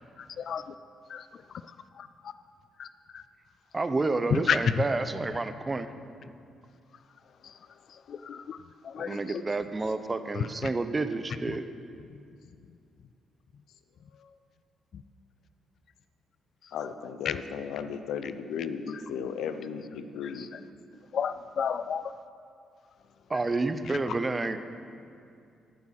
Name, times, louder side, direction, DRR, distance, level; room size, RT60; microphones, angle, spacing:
voice 1, 0.2-0.7 1.1-1.4 1.9-2.3 2.8-2.9 3.1-3.2 4.3-4.7 7.4-7.6 7.9-8.6 8.8-9.4 10.4-10.7 11.5-11.6 14.9-15.0 16.6-16.7 17.3-17.4 18.2-18.3 20.4-20.5 21.1-22.1 24.1-24.2, left 7 dB, 60° left, 12 dB, 0.4 m, -32 dB
voice 2, 3.7-5.9 9.0-11.7 23.3-24.6, right 3 dB, 25° right, 10 dB, 0.7 m, -29 dB
voice 3, 16.7-20.5, left 7 dB, 85° left, 9 dB, 0.7 m, -36 dB
16.5 x 7.4 x 5.9 m, 2.4 s
cardioid pair, 90°, 0 cm